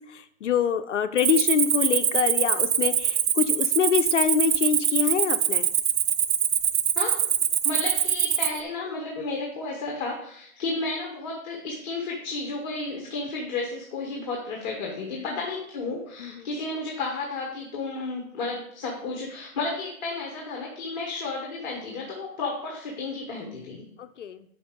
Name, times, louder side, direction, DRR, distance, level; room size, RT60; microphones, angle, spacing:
voice 1, 0.1-5.7 16.2-16.3 24.0-24.4, left 8 dB, 60° left, 10 dB, 0.6 m, -25 dB
Cricket, 1.2-8.6, right 9 dB, 80° right, 0.7 m, -24 dB
voice 2, 7.6-23.8, left 3 dB, 30° left, -1 dB, 1.2 m, -32 dB
8.5 x 5.3 x 3.6 m, 0.69 s
hypercardioid pair, 155°, 41 cm